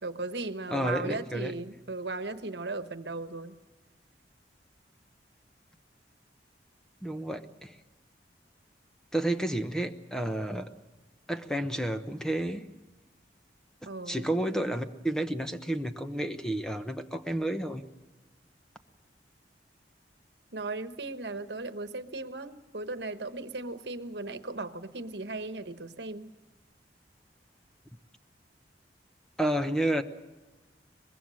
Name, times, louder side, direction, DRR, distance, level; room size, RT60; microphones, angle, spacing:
voice 1, 0.0-3.6 13.9-14.3 20.5-26.3, right 3 dB, 75° right, 11 dB, 1.2 m, -37 dB
voice 2, 0.7-1.5 7.0-7.7 9.1-10.7 11.3-12.7 14.1-17.8 29.4-30.0, right 1 dB, 5° left, 8 dB, 0.9 m, -31 dB
24.0 x 21.0 x 6.4 m, 1.1 s
head